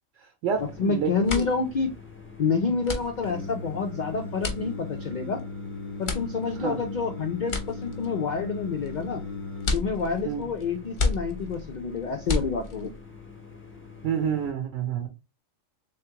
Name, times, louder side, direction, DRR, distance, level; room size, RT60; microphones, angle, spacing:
voice 1, 0.2-1.5 6.6-6.8 10.2-10.5 14.0-15.1, right 7 dB, 70° right, 4 dB, 0.9 m, -29 dB
sound 1, 0.5-0.8 1.1-13.0, left 3 dB, 45° left, 0.8 m, -33 dB
sound 2, 0.5-14.5, left 5 dB, 10° left, 0.7 m, -47 dB
voice 2, 0.8-1.9 2.4-5.4 6.0-9.2 9.7-12.9, left 5 dB, 80° left, 5 dB, 0.4 m, -28 dB
Singing, 3.2-9.8, left 3 dB, 45° right, 0.8 m, -37 dB
3.6 x 3.0 x 2.8 m, 0.27 s
omnidirectional pair, 1.4 m